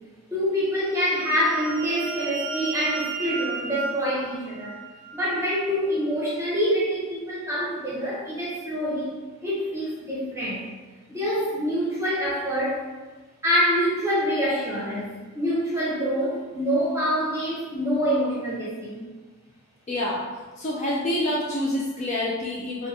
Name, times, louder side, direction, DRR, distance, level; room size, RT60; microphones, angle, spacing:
voice 1, 0.3-4.8 5.1-9.1 9.4-10.6 11.1-12.8 13.4-19.0, equal, 15° right, -6 dB, 0.7 m, -26 dB
sound 1, 0.9-5.4, right 4 dB, 90° right, 0.4 m, -34 dB
voice 2, 19.9-20.2 20.6-22.9, left 1 dB, 30° left, -5 dB, 0.3 m, -27 dB
3.8 x 2.2 x 2.7 m, 1.3 s
head